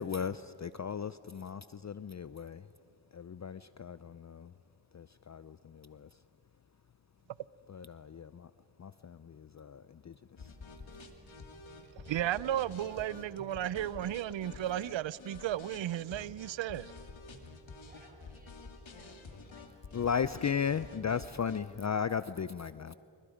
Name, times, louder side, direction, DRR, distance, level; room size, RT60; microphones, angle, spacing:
voice 1, 0.0-2.7 3.1-4.5 4.9-6.1 7.7-8.5 8.8-10.5 19.9-23.0, left 7 dB, 40° left, 0.5 m, -36 dB
sound 1, 10.4-21.6, left 4 dB, 80° left, 2.4 m, -49 dB
voice 2, 12.1-16.9, right 12 dB, 75° right, 0.6 m, -34 dB
voice 3, 17.7-20.5, right 1 dB, 20° right, 4.2 m, -63 dB
29.0 x 28.0 x 5.1 m
cardioid pair, 45°, 46 cm